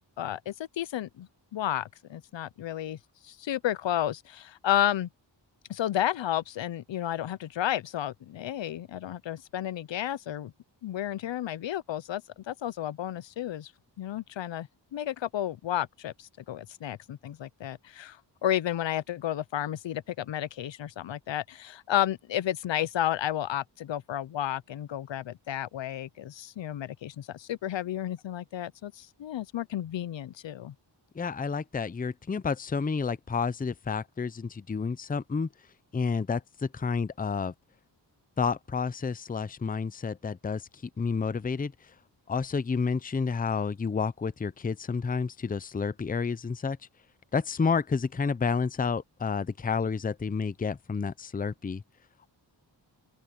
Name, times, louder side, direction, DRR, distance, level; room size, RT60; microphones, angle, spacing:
voice 1, 0.2-3.0 3.2-5.1 5.7-10.5 10.8-12.2 12.5-13.7 14.0-30.7, left 11 dB, 80° left, 0.7 m, -32 dB
voice 2, 31.1-35.5 35.9-37.5 38.4-41.7 42.3-46.8 47.3-51.8, left 5 dB, 20° left, 0.5 m, -30 dB
open air
wide cardioid pair, 130°, 44 cm